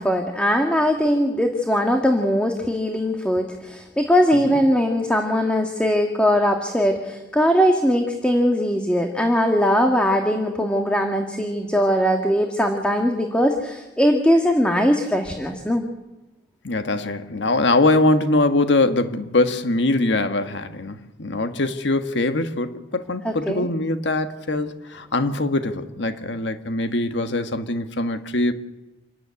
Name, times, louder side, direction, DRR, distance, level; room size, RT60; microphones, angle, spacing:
voice 1, 0.0-15.8 23.2-23.7, equal, 5° left, 3 dB, 1.7 m, -20 dB
voice 2, 16.6-28.5, left 2 dB, 90° left, 8 dB, 1.5 m, -22 dB
27.0 x 14.0 x 9.7 m, 1.0 s
head